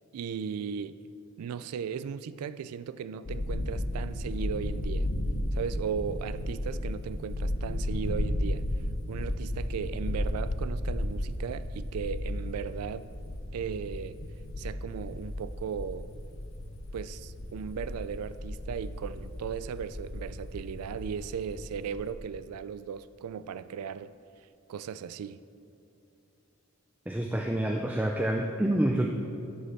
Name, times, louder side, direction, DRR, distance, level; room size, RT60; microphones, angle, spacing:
voice 1, 0.1-1.0 1.4-5.1 5.5-8.6 9.1-13.1 13.5-14.2 14.6-16.1 16.9-24.1 24.7-25.4, right 7 dB, 90° right, 0.3 m, -37 dB
sound 1, 3.3-22.1, left 1 dB, 60° left, 0.8 m, -34 dB
voice 2, 27.1-29.1, right 1 dB, 5° right, 0.4 m, -27 dB
12.5 x 5.2 x 6.3 m
head